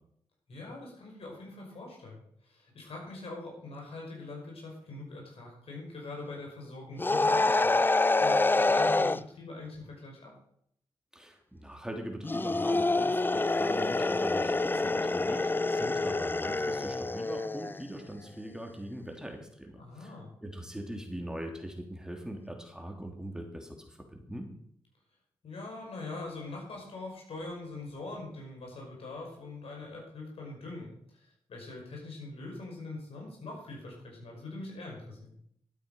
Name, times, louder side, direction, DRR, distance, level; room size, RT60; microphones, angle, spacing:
voice 1, 0.5-7.7 8.2-10.3 19.8-20.3 25.4-35.4, left 2 dB, 70° left, -1 dB, 5.6 m, -43 dB
sound 1, 7.0-9.2 12.2-17.8, left 2 dB, 20° left, 0.5 m, -27 dB
voice 2, 11.1-20.1 20.4-24.5, equal, 5° right, 2 dB, 3.1 m, -41 dB
12.0 x 9.0 x 5.7 m, 0.69 s
supercardioid pair, 45°, 10 cm